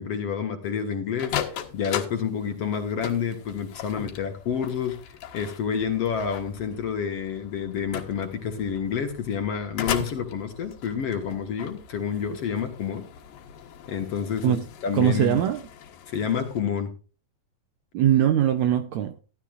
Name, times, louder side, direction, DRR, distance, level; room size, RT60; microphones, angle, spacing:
voice 1, 0.0-1.3 1.7-5.0 5.3-13.0 13.9-14.6 14.8-15.4 16.1-16.9, left 7 dB, 55° left, 2.1 m, -29 dB
sound 1, 1.1-16.6, left 9 dB, 80° left, 3.2 m, -38 dB
voice 2, 14.9-15.6 17.9-19.2, right 10 dB, 75° right, 1.7 m, -21 dB
15.5 x 12.0 x 2.5 m
omnidirectional pair, 3.9 m